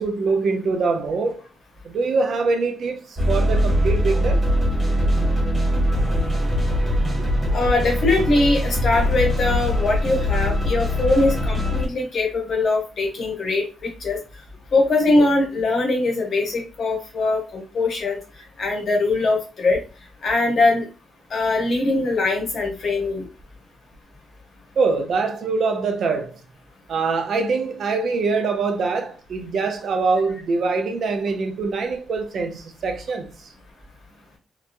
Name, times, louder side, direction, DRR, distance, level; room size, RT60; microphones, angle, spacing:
voice 1, 0.0-1.4 1.8-4.4 7.2-7.3 24.8-26.4 26.9-33.5, right 4 dB, 50° right, 0.4 m, -24 dB
sound 1, 3.2-11.9, equal, 15° right, 1.4 m, -21 dB
voice 2, 7.5-14.2 14.7-18.2 18.6-19.8 20.2-20.9 21.3-23.2, left 2 dB, 45° left, 0.9 m, -21 dB
2.9 x 2.2 x 2.5 m
wide cardioid pair, 170°, 0 cm